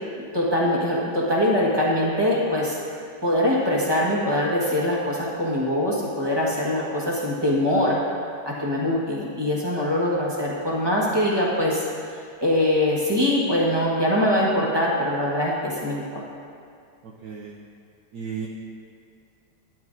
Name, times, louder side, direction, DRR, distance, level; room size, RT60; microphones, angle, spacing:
voice 1, 0.3-2.8 3.2-8.0 8.4-16.2, left 1 dB, 15° right, -5 dB, 1.1 m, -23 dB
voice 2, 17.0-17.6 18.1-18.5, right 6 dB, 70° right, -2 dB, 1.2 m, -34 dB
12.0 x 10.5 x 2.6 m, 2.4 s
omnidirectional pair, 2.3 m